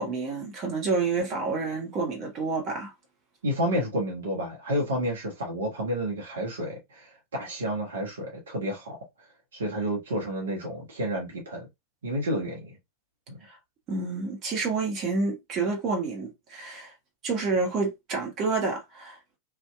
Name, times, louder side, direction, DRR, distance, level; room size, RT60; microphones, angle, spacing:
voice 1, 0.0-2.9 13.4-13.6 13.9-16.9 17.2-19.4, right 4 dB, 35° right, 1.0 m, -29 dB
voice 2, 3.4-8.9 9.5-11.7 12.0-12.8 13.3-13.4, equal, 65° right, 0.8 m, -30 dB
2.6 x 2.2 x 2.2 m
figure-of-eight pair, 90°, 0 cm